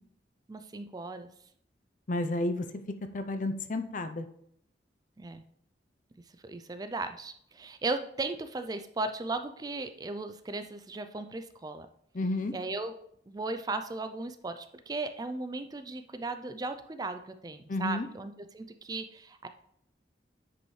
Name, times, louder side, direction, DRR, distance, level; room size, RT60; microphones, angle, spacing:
voice 1, 0.5-1.3 5.2-5.4 6.4-11.9 12.5-13.0 13.3-19.5, right 3 dB, 20° right, 9 dB, 0.4 m, -36 dB
voice 2, 2.1-2.8 3.1-4.3 12.1-12.5 17.7-18.1, left 2 dB, 45° left, 9 dB, 0.6 m, -31 dB
9.4 x 5.2 x 3.2 m, 0.68 s
head